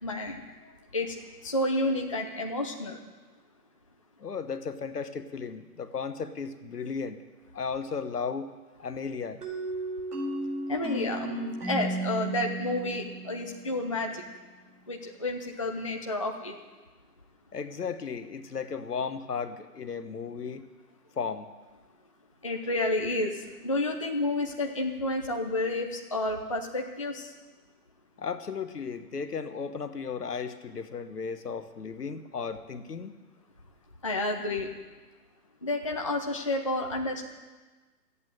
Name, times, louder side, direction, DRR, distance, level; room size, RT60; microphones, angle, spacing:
voice 1, 0.0-0.4 0.9-3.0 10.7-14.2 14.9-16.5 22.4-27.3 34.0-34.7 35.6-37.2, left 2 dB, 20° left, 2 dB, 0.5 m, -30 dB
voice 2, 4.2-7.2 7.5-8.5 8.8-9.4 17.5-20.6 21.2-21.5 28.2-33.1, left 5 dB, 70° left, 10 dB, 1.3 m, -35 dB
sound 1, 9.4-14.1, right 1 dB, 70° right, 4.1 m, -34 dB
14.0 x 8.4 x 9.0 m, 1.3 s
figure-of-eight pair, 140°, 49 cm